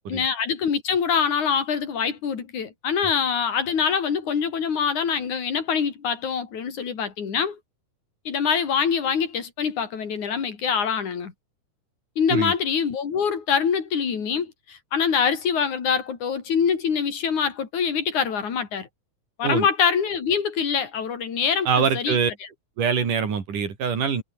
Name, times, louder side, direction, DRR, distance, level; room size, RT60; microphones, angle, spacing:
voice 1, 0.1-7.6 8.3-11.3 12.2-18.9 19.4-21.7 21.9-22.2, left 6 dB, 70° left, 4.8 m, -24 dB
voice 2, 21.7-22.3 22.8-24.2, right 6 dB, 85° right, 5.2 m, -24 dB
omnidirectional pair, 3.6 m